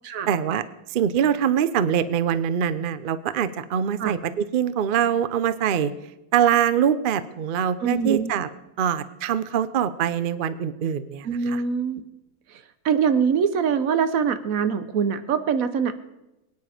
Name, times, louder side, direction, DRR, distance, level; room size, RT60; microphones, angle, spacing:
voice 1, 0.3-0.6 0.9-5.9 6.3-8.5 8.8-11.6, right 9 dB, 80° right, 14 dB, 0.4 m, -23 dB
voice 2, 7.8-8.3 11.2-12.0 12.8-15.9, right 6 dB, 60° right, 11 dB, 1.2 m, -23 dB
22.5 x 9.4 x 5.0 m, 0.95 s
omnidirectional pair, 1.8 m